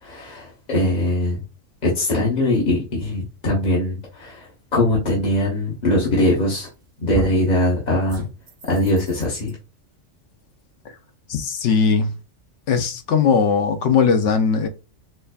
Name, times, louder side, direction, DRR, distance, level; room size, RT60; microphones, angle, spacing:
voice 1, 0.0-1.4 1.8-6.7 7.0-8.2 8.7-9.5, left 1 dB, 40° left, 0.9 m, -21 dB
sound 1, 6.3-6.7 7.1-7.5 8.1-9.5, right 3 dB, 40° right, 0.5 m, -33 dB
voice 2, 11.3-12.1 12.7-14.7, left 6 dB, 70° left, 0.9 m, -19 dB
4.2 x 2.6 x 2.3 m
omnidirectional pair, 1.3 m